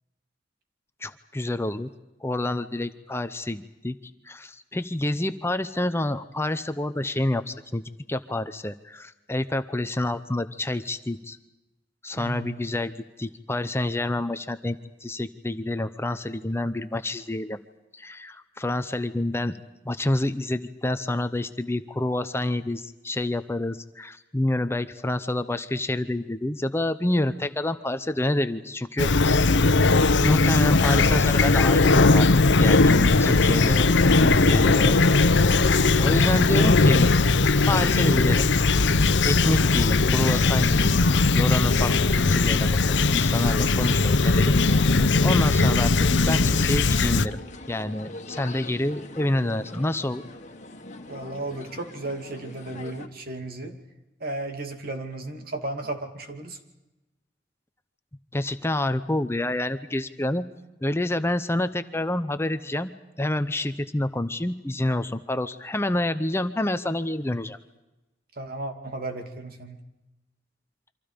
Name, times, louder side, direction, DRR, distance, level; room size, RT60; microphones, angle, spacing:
voice 1, 1.0-1.9 2.2-4.0 4.2-7.8 8.1-11.4 12.0-12.9 13.2-14.8 15.0-17.6 17.9-19.5 19.8-29.5 30.0-35.5 36.0-37.1 37.7-38.5 39.2-41.0 41.3-45.9 46.3-47.4 47.7-50.2 58.3-60.4 60.8-62.9 63.2-67.6, left 1 dB, 15° left, 10 dB, 0.8 m, -28 dB
voice 2, 12.2-12.6 51.1-53.8 54.2-56.6 68.4-69.8, right 2 dB, 55° right, 5 dB, 2.7 m, -34 dB
Fowl / Chirp tweet, 29.0-47.3, left 3 dB, 80° left, 0.8 m, -19 dB
sound 1, 40.4-53.1, left 2 dB, 45° left, 1.8 m, -42 dB
28.5 x 25.5 x 5.2 m, 1.0 s
head